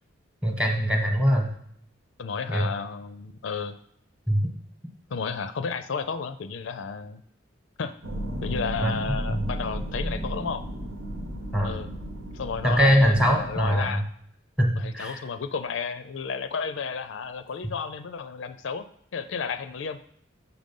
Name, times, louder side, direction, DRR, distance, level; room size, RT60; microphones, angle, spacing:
voice 1, 0.4-1.5 2.5-2.7 4.3-4.4 8.8-8.9 9.3-9.4 11.5-11.7 12.6-14.0 14.6-15.2, equal, 5° right, 2 dB, 0.9 m, -22 dB
voice 2, 2.2-3.8 5.1-7.2 7.8-7.9 8.4-10.6 11.6-11.9 12.3-14.0 14.8-18.9 19.1-20.0, left 5 dB, 70° left, 11 dB, 0.4 m, -32 dB
sound 1, 8.0-13.8, equal, 80° right, 1.2 m, -34 dB
5.9 x 5.1 x 5.3 m, 0.68 s
head